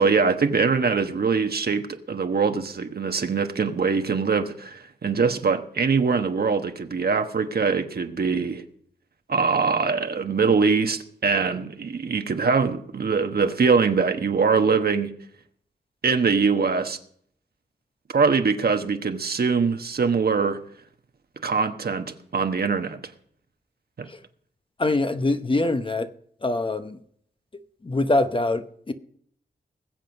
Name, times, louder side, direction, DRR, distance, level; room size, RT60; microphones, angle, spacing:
voice 1, 0.0-8.6 9.3-15.1 16.0-17.0 18.1-20.6 21.4-23.0 24.0-24.1, right 5 dB, 60° right, 1.2 m, -23 dB
voice 2, 24.8-26.1 26.4-27.0 27.8-28.9, left 2 dB, 30° left, 0.9 m, -24 dB
20.5 x 7.7 x 5.3 m
wide cardioid pair, 90°, 18 cm